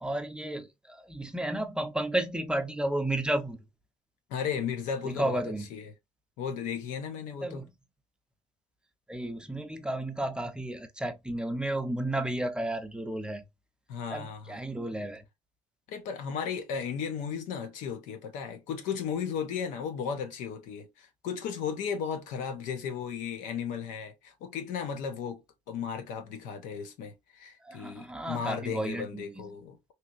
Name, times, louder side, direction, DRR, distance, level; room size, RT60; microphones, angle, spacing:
voice 1, 0.0-3.6 5.0-5.7 7.4-7.7 9.1-13.4 14.1-15.2 27.6-29.4, right 1 dB, 5° right, 0.5 m, -32 dB
voice 2, 4.3-5.4 5.7-5.9 6.4-7.6 13.9-14.6 15.9-25.4 25.7-29.8, left 7 dB, 85° left, 0.8 m, -35 dB
3.2 x 2.8 x 2.4 m
cardioid pair, 110°, 13 cm